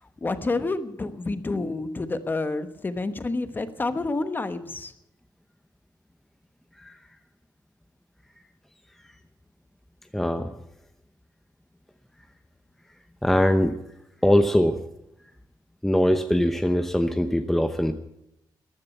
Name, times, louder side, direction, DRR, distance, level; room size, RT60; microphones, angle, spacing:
voice 1, 0.2-4.9, left 3 dB, 25° left, 11 dB, 1.1 m, -29 dB
voice 2, 10.1-10.5 13.2-13.8 14.2-14.8 15.8-17.9, equal, 5° left, 7 dB, 0.8 m, -21 dB
14.5 x 10.5 x 8.5 m, 0.83 s
wide cardioid pair, 120°, 8 cm